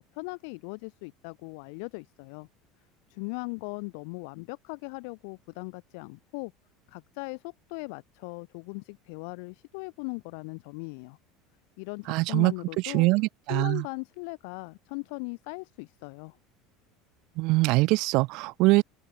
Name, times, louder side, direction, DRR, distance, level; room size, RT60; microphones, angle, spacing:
voice 1, 0.1-2.5 3.1-6.5 6.9-11.2 11.8-13.1 13.5-16.4, left 36 dB, 65° left, 3.2 m, -39 dB
voice 2, 12.1-12.5 12.8-13.8 17.4-18.8, right 23 dB, 50° right, 0.8 m, -23 dB
open air
cardioid pair, 165°, 0 cm